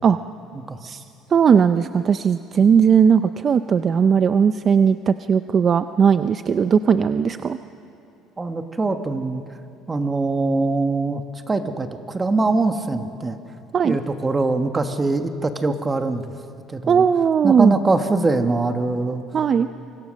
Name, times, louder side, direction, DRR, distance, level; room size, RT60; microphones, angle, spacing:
voice 1, 1.3-7.6 13.7-14.0 15.6-15.7 16.9-17.8 19.3-19.7, right 7 dB, 35° right, 11 dB, 0.5 m, -18 dB
voice 2, 8.4-9.4 9.9-13.4 13.8-16.3 16.7-17.0 17.4-19.2, right 3 dB, 20° right, 7 dB, 1.2 m, -23 dB
27.5 x 24.0 x 6.3 m, 2.7 s
cardioid pair, 130°, 0 cm